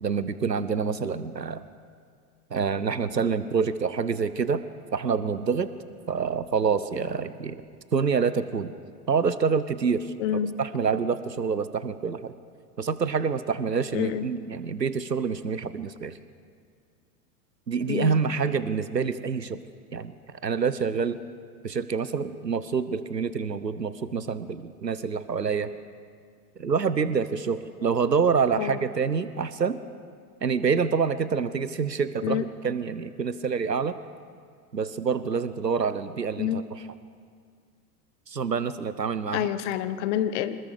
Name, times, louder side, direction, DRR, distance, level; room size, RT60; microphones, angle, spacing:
voice 1, 0.0-1.6 2.5-4.6 4.9-5.7 6.1-7.6 7.9-8.7 9.1-10.1 10.6-12.3 12.8-16.2 17.7-19.6 19.9-20.1 20.4-21.2 21.6-25.7 26.6-29.8 30.4-33.9 34.7-36.6 38.3-39.5, right 5 dB, 90° right, 13 dB, 1.2 m, -27 dB
voice 2, 10.2-10.5 13.9-14.3 17.9-18.2 28.6-28.8 32.2-32.4 36.4-36.6 39.3-40.6, left 11 dB, 45° left, 12 dB, 1.4 m, -27 dB
27.0 x 20.0 x 5.2 m, 2.1 s
figure-of-eight pair, 95°, 48 cm